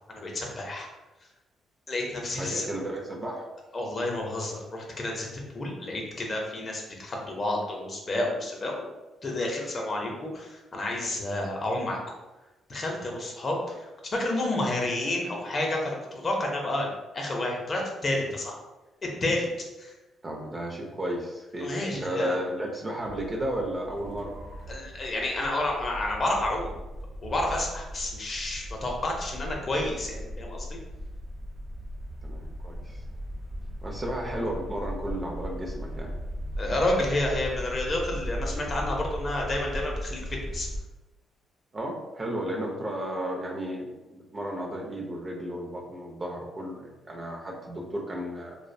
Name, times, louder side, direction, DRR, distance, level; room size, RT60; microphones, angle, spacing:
voice 1, 0.1-0.9 1.9-2.7 3.7-8.9 9.2-12.0 12.7-18.6 19.2-19.5 19.8-19.9 21.6-22.3 24.7-26.7 27.2-30.7 36.6-40.2 40.5-40.7, left 1 dB, 40° left, 0 dB, 0.6 m, -30 dB
voice 2, 2.4-3.5 20.2-24.3 32.2-33.0 33.8-36.1 41.7-48.6, right 1 dB, 30° right, 0 dB, 0.5 m, -33 dB
sound 1, 23.0-40.8, equal, 80° right, 0.6 m, -37 dB
2.5 x 2.0 x 2.5 m, 1.1 s
cardioid pair, 90°, 0 cm